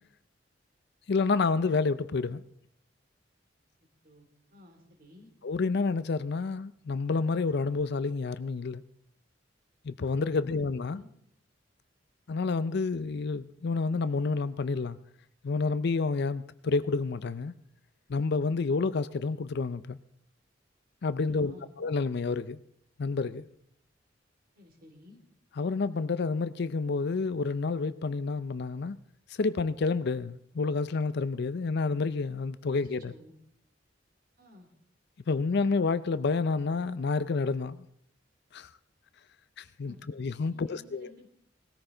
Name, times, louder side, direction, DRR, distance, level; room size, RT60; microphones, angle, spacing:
voice 1, 1.1-2.4 5.4-8.8 9.8-11.0 12.3-15.0 15.4-17.5 18.1-20.0 21.0-22.6 23.0-23.5 25.6-29.0 29.3-33.1 35.3-37.9 38.5-38.7 39.6-41.1, left 4 dB, 60° left, 0.5 m, -29 dB
voice 2, 4.0-5.3 10.3-10.6 10.8-11.1 21.1-21.7 24.5-25.2 33.0-33.4 34.4-34.7 39.8-40.1 40.5-41.3, left 1 dB, 50° right, 3.0 m, -54 dB
19.0 x 14.0 x 3.9 m
head